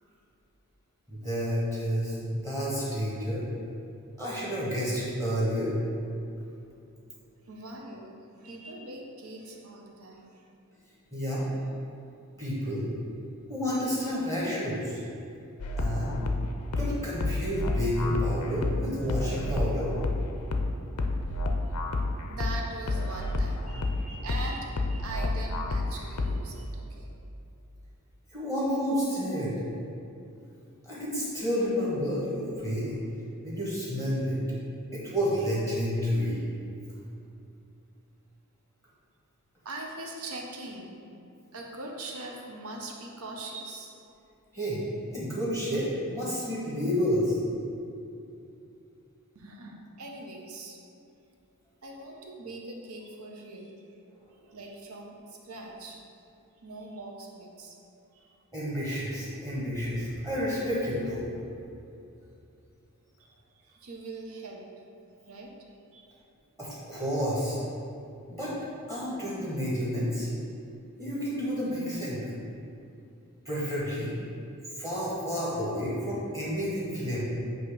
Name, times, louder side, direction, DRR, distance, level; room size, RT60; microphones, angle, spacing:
voice 1, 1.1-3.4 4.2-5.7 11.1-11.5 12.4-12.9 13.5-15.0 15.8-16.1 16.8-19.9 28.3-29.5 30.8-32.9 33.4-34.4 34.9-36.4 44.5-44.8 45.1-47.4 58.5-61.2 66.6-67.6 68.3-68.5 68.9-70.3 71.0-72.2 73.4-74.1 74.8-77.2, equal, 15° right, -8 dB, 1.2 m, -30 dB
voice 2, 7.4-10.5 22.3-27.1 39.6-41.0 41.5-43.9 49.3-50.8 51.8-53.8 54.5-56.0 56.6-57.8 58.1-58.4 63.2-64.7 65.2-65.5 65.9-66.1, right 2 dB, 75° right, 0 dB, 0.9 m, -42 dB
sound 1, 15.6-26.6, left 2 dB, 85° left, 0.6 m, -30 dB
8.0 x 2.9 x 4.8 m, 2.6 s
head